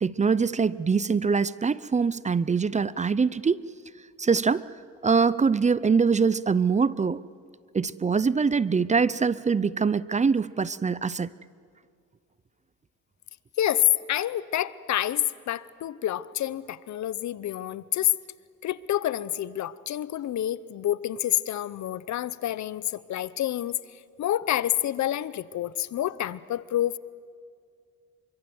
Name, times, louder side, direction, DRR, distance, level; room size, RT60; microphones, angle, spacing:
voice 1, 0.0-3.6 4.2-4.6 5.0-7.2 7.7-11.3, right 5 dB, 25° right, 19 dB, 0.6 m, -23 dB
voice 2, 13.6-18.1 18.6-23.8 24.2-27.0, left 12 dB, 65° left, 18 dB, 0.8 m, -28 dB
27.5 x 24.0 x 7.9 m, 2.2 s
cardioid pair, 90°, 30 cm